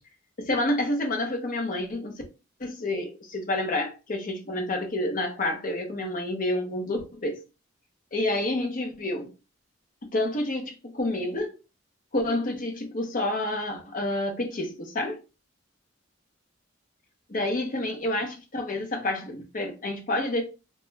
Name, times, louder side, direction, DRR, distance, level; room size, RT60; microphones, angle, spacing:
voice 1, 0.4-2.2 2.6-7.4 8.1-9.3 10.0-11.6 12.1-15.2 17.3-20.4, left 1 dB, 45° left, 0.7 m, -29 dB
2.4 x 2.2 x 3.1 m
head